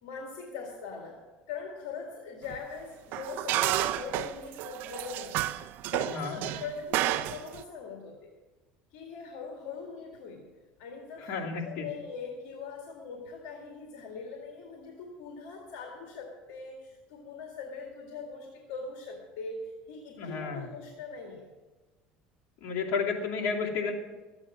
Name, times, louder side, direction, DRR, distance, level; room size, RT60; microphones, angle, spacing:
voice 1, 0.0-5.4 5.9-8.3 8.9-10.5 10.8-21.5, left 5 dB, 80° left, 1 dB, 2.0 m, -41 dB
sound 1, 2.5-2.6 3.1-7.6, right 15 dB, 65° right, 0.5 m, -31 dB
voice 2, 6.0-6.4 11.2-11.8 20.2-20.7 22.6-23.9, left 5 dB, 60° left, -2 dB, 2.8 m, -32 dB
14.0 x 8.8 x 6.1 m, 1.2 s
supercardioid pair, 110°, 3 cm